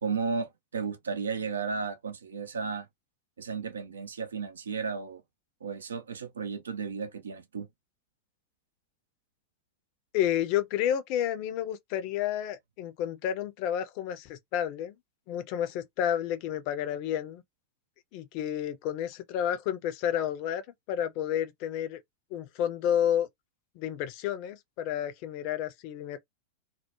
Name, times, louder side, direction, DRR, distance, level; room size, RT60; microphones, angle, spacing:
voice 1, 0.0-2.9 3.4-5.2 5.6-7.7, right 5 dB, 70° right, 0.5 m, -34 dB
voice 2, 10.1-15.0 15.3-17.4 18.1-20.6 20.9-22.0 22.3-23.3 23.7-26.2, left 10 dB, 45° left, 0.5 m, -30 dB
2.3 x 2.1 x 2.9 m
figure-of-eight pair, 90°, 0 cm